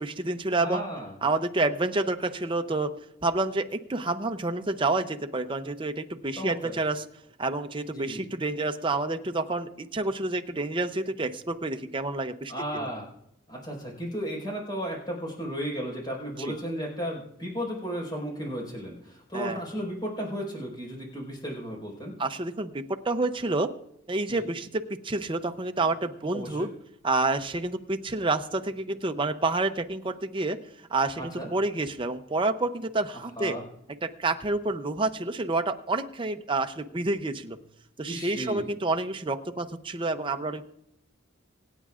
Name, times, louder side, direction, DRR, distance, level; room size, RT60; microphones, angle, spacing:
voice 1, 0.0-0.8 1.2-2.9 3.2-7.0 7.4-12.9 16.4-16.6 19.3-19.6 22.2-23.7 24.1-26.7 27.0-30.6 30.9-33.6 34.0-37.6 38.0-40.6, right 2 dB, 25° right, 7 dB, 0.7 m, -29 dB
voice 2, 0.6-1.1 6.4-6.7 7.9-8.2 12.5-13.1 13.5-22.1 24.3-24.5 26.3-26.7 31.2-31.5 33.4-33.6 38.0-38.6, equal, 20° left, -2 dB, 4.9 m, -34 dB
25.5 x 9.3 x 2.5 m, 0.78 s
head